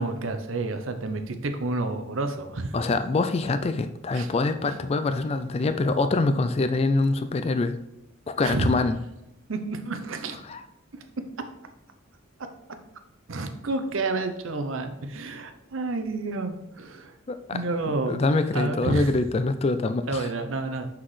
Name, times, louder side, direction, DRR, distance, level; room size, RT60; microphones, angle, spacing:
voice 1, 0.0-2.7 4.1-4.3 8.4-8.7 9.5-10.4 13.3-17.1 17.5-18.2 18.5-19.1 20.1-20.9, right 2 dB, 70° right, 8 dB, 0.7 m, -29 dB
voice 2, 2.7-7.8 8.3-9.0 10.4-10.6 17.3-17.6 18.1-20.3, left 3 dB, 30° left, 10 dB, 0.3 m, -25 dB
5.9 x 5.8 x 3.2 m, 0.89 s
head